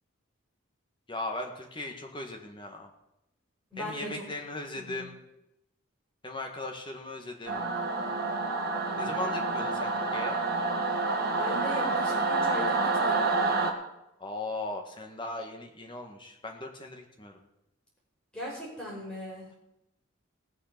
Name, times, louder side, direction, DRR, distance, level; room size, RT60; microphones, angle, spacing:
voice 1, 1.1-2.9 3.8-5.2 6.2-7.6 9.0-10.4 14.2-17.4, left 2 dB, 20° left, 2 dB, 1.7 m, -38 dB
voice 2, 3.7-4.2 4.7-5.1 11.4-13.5 18.3-19.5, equal, 5° left, -5 dB, 5.2 m, -38 dB
Singing / Musical instrument, 7.5-13.7, right 3 dB, 45° right, 1.7 m, -28 dB
18.0 x 6.8 x 6.8 m, 0.88 s
head